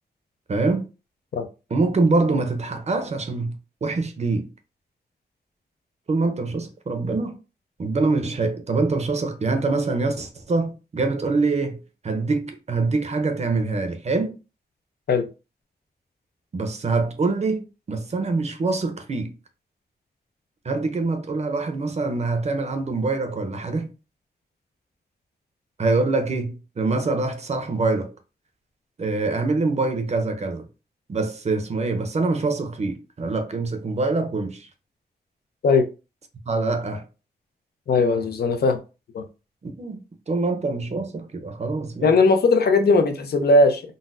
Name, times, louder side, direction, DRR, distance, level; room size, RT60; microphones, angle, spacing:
voice 1, 0.5-0.8 1.7-3.5 3.8-4.5 6.1-7.3 7.8-14.3 16.5-19.3 20.6-23.9 25.8-28.1 29.0-30.7 31.1-34.7 36.5-37.1 39.6-42.1, right 3 dB, 40° right, 0.6 m, -24 dB
voice 2, 37.9-38.8 39.1-39.2 42.0-43.8, left 3 dB, 75° left, 0.5 m, -18 dB
3.9 x 2.1 x 2.5 m
wide cardioid pair, 130°, 17 cm